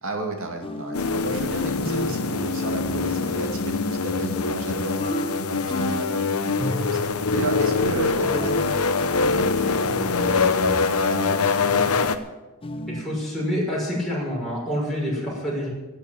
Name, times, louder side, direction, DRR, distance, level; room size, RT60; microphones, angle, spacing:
voice 1, 0.0-7.0 7.3-11.6, right 2 dB, 65° right, 3 dB, 2.4 m, -34 dB
sound 1, 0.6-1.2 1.8-2.3 5.0-6.2 6.6-7.3 8.2-8.7 11.0-11.5 12.6-13.1, left 1 dB, 25° left, 0.8 m, -31 dB
sound 2, 0.9-12.2, left 4 dB, 75° left, 1.0 m, -24 dB
voice 2, 12.9-15.7, equal, ahead, -7 dB, 6.1 m, -27 dB
16.0 x 8.2 x 8.9 m, 1.1 s
head